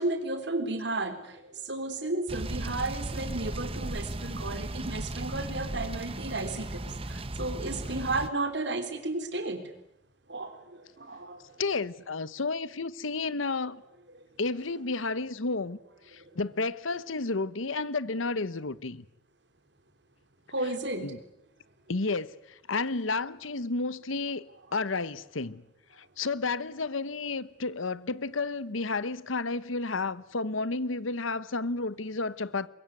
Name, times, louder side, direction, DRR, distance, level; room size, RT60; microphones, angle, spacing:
voice 1, 0.0-9.7 10.3-11.4 16.2-16.3 20.5-21.1, right 2 dB, 60° right, 3.6 m, -33 dB
sound 1, 2.3-8.3, right 1 dB, 30° right, 1.1 m, -36 dB
voice 2, 11.6-13.8 14.4-15.8 16.1-19.0 21.0-21.2 21.9-24.4 24.7-25.6 26.0-32.7, left 3 dB, 85° left, 1.1 m, -31 dB
23.5 x 22.5 x 9.5 m
head